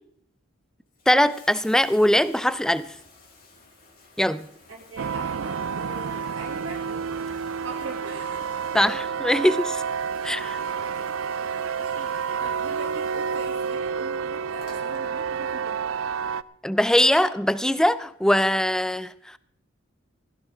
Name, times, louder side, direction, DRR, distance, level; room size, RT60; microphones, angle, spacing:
Bathtub (filling or washing), 0.8-15.8 16.9-17.0, left 3 dB, 50° left, 4.0 m, -53 dB
voice 1, 1.1-2.9 4.2-4.5 8.7-9.8 10.2-10.6 16.6-19.4, left 1 dB, 5° left, 0.4 m, -21 dB
voice 2, 4.7-7.0 7.6-8.6 11.5-15.7, right 3 dB, 65° right, 2.7 m, -41 dB
sound 1, 5.0-16.4, right 6 dB, 80° right, 0.4 m, -29 dB
16.5 x 15.5 x 3.5 m
head